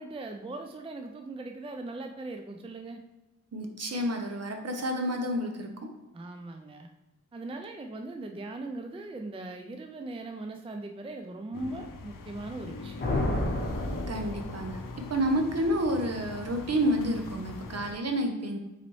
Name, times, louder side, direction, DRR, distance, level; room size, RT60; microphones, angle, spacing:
voice 1, 0.0-3.0 6.1-6.9 7.3-13.0, right 2 dB, 20° right, 5 dB, 0.4 m, -39 dB
voice 2, 3.5-5.7 14.1-14.8 15.1-18.6, equal, 50° right, 4 dB, 0.8 m, -29 dB
sound 1, 11.5-17.9, left 3 dB, 85° left, 0.5 m, -42 dB
sound 2, 13.0-15.0, left 1 dB, 35° left, 1.0 m, -30 dB
4.1 x 4.0 x 3.1 m, 1.1 s
cardioid pair, 55°, 32 cm